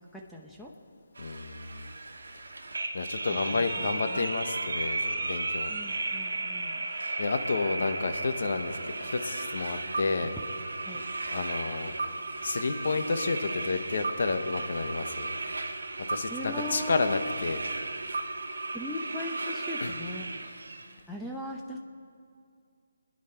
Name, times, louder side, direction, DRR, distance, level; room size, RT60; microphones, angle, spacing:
voice 1, 0.1-0.7 3.5-4.3 5.7-6.8 10.4-10.5 10.8-11.0 16.3-17.2 18.7-20.3 21.1-21.8, left 1 dB, 5° left, -2 dB, 0.9 m, -39 dB
voice 2, 1.2-1.9 2.9-5.7 7.2-10.3 11.3-12.0 12.4-15.4 16.1-17.6 19.8-19.9, left 4 dB, 60° left, 7 dB, 1.3 m, -30 dB
sound 1, 1.2-20.9, right 2 dB, 80° right, 1.3 m, -35 dB
26.5 x 10.5 x 4.5 m, 2.3 s
figure-of-eight pair, 155°, 0 cm